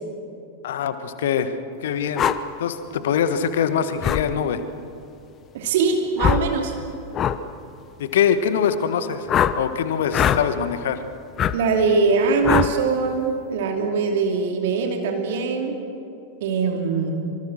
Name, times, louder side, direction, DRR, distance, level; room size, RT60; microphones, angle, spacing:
voice 1, 0.6-1.5 1.8-2.3 2.6-4.6 8.0-9.3 9.6-11.0, left 8 dB, 60° left, 11 dB, 1.5 m, -23 dB
sound 1, 2.2-2.4 4.0-4.2 6.2-6.5 7.1-7.4 9.3-9.6 10.1-10.4 11.4-11.5 12.4-12.7, left 9 dB, 30° left, 0.9 m, -20 dB
voice 2, 5.5-6.7 11.5-15.8 16.4-17.1, right 4 dB, 55° right, 3 dB, 2.8 m, -22 dB
25.0 x 24.5 x 6.5 m, 2.6 s
figure-of-eight pair, 90°, 0 cm